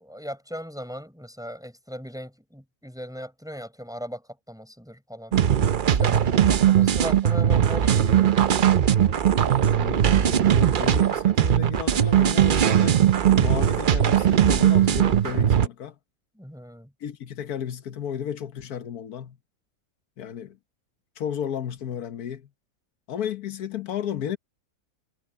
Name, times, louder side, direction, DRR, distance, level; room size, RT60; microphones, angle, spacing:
voice 1, 0.0-5.4 5.9-8.3 11.1-11.2 16.4-16.9, equal, ahead, 5.1 m, -38 dB
sound 1, 5.3-15.7, right 10 dB, 55° right, 0.6 m, -19 dB
voice 2, 9.7-13.0 13.3-16.0 17.0-19.4 20.2-20.6 21.2-22.5 23.1-24.4, left 9 dB, 90° left, 1.5 m, -33 dB
omnidirectional pair, 1.5 m